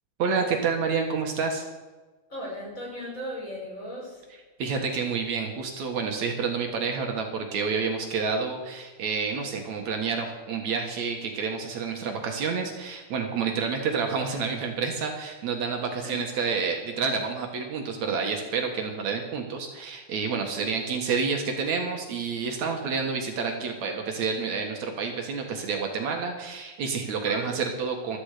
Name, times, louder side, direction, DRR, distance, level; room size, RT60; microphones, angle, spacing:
voice 1, 0.2-1.6 4.6-28.2, right 5 dB, 65° right, 3 dB, 2.8 m, -29 dB
voice 2, 2.3-4.3 16.0-16.3 27.2-27.6, left 1 dB, 25° left, -4 dB, 5.5 m, -37 dB
16.0 x 13.0 x 5.0 m, 1.2 s
omnidirectional pair, 3.5 m